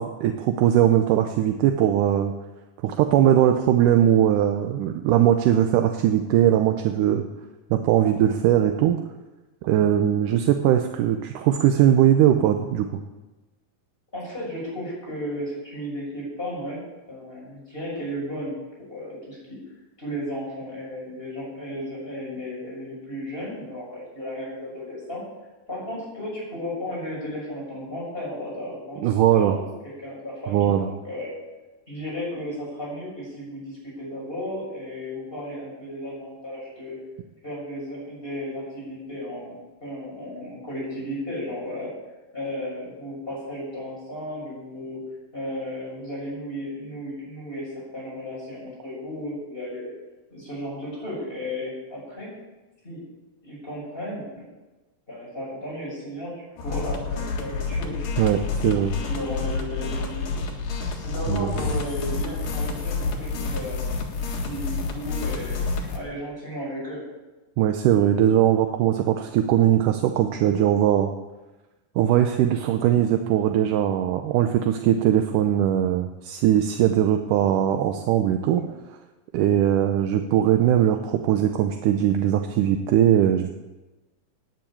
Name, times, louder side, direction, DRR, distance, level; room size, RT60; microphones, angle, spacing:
voice 1, 0.0-2.3 2.8-7.3 7.7-9.0 9.6-13.0 29.0-29.6 30.5-30.9 58.2-59.0 61.3-61.5 67.6-71.1 72.0-78.6 79.3-83.5, right 11 dB, 80° right, 6 dB, 2.2 m, -20 dB
voice 2, 14.1-16.8 17.1-18.6 18.9-19.6 20.0-25.2 25.7-31.3 31.9-37.0 37.4-39.5 39.8-41.9 42.3-45.0 45.3-49.9 50.3-52.3 52.8-53.0 53.4-54.4 55.1-58.0 58.7-60.4 61.0-63.8 64.2-67.0 72.8-72.9 78.5-78.7, equal, 15° left, -6 dB, 6.6 m, -34 dB
sound 1, 56.6-66.0, left 4 dB, 80° left, 3.5 m, -29 dB
12.0 x 9.8 x 8.6 m, 1.1 s
omnidirectional pair, 3.9 m